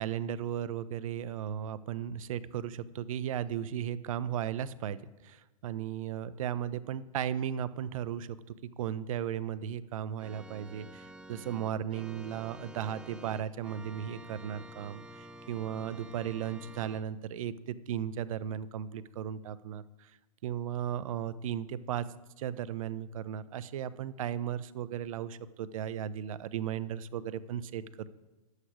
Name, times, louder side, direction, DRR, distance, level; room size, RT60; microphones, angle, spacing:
voice 1, 0.0-20.1 20.4-22.1 22.4-28.1, right 9 dB, 60° right, 16 dB, 0.6 m, -36 dB
Organ, 10.2-17.0, right 1 dB, 5° right, 0.5 m, -49 dB
11.5 x 8.2 x 4.9 m, 1.1 s
hypercardioid pair, 115°, 19 cm